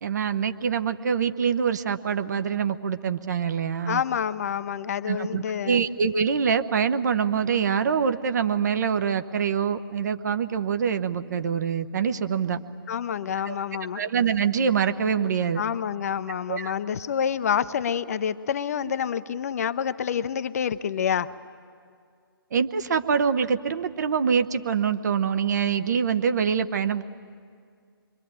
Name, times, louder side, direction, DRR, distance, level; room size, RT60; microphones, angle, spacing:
voice 1, 0.0-4.0 5.1-12.6 13.5-13.6 13.9-15.6 16.5-16.7 22.5-27.0, right 7 dB, 45° right, 9 dB, 1.0 m, -25 dB
voice 2, 3.9-5.8 12.9-14.0 15.6-21.3, left 8 dB, 40° left, 13 dB, 0.6 m, -28 dB
26.0 x 23.0 x 8.9 m, 2.2 s
figure-of-eight pair, 135°, 12 cm